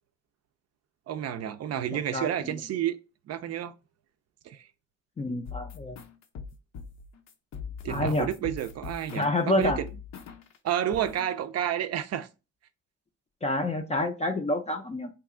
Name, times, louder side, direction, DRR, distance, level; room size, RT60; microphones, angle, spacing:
voice 1, 1.1-3.0 3.3-3.7 4.4-4.7 7.8-9.9 10.6-12.3, right 10 dB, 55° right, 0.4 m, -30 dB
voice 2, 2.1-2.6 5.2-6.0 7.9-8.3 9.1-9.8 13.4-15.1, left 1 dB, 20° left, 0.4 m, -28 dB
sound 1, 5.5-10.6 10.9-11.3, left 6 dB, 65° left, 0.6 m, -41 dB
2.9 x 2.3 x 3.5 m
cardioid pair, 90°, 30 cm